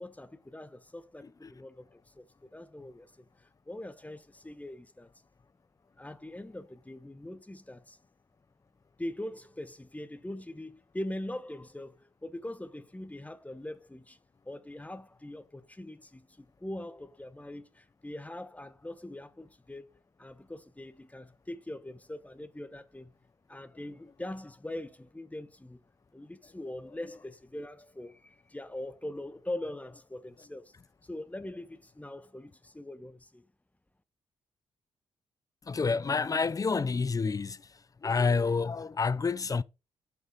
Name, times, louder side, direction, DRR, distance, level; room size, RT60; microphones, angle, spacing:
voice 1, 0.0-5.1 6.0-8.0 9.0-14.2 14.4-23.2 23.5-25.8 26.1-30.7 31.0-33.5, left 1 dB, 10° left, 1.1 m, -42 dB
voice 2, 35.7-37.6 38.0-39.6, left 4 dB, 30° left, 0.6 m, -28 dB
8.1 x 5.5 x 4.0 m
hypercardioid pair, 40°, 13 cm